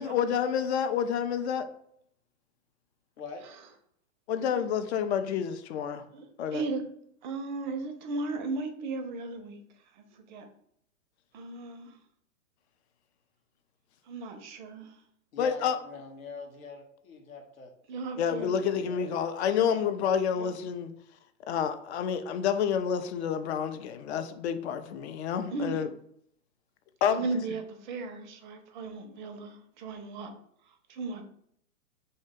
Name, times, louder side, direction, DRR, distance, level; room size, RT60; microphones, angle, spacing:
voice 1, 0.0-1.6 4.3-6.0 6.4-6.6 15.4-15.8 18.2-20.9 21.5-25.9 27.0-27.2, left 8 dB, 55° left, 0.4 m, -29 dB
voice 2, 3.2-3.5 15.3-17.7 18.3-19.1, left 4 dB, 80° left, 0.8 m, -44 dB
voice 3, 6.1-6.9 7.2-9.6 9.9-10.5 11.3-12.0 14.0-15.0 17.9-18.5 19.5-19.8 20.3-20.5 25.5-25.8 27.1-30.3 30.7-31.3, right 3 dB, 35° right, 0.4 m, -36 dB
2.7 x 2.1 x 3.5 m
hypercardioid pair, 115°, 41 cm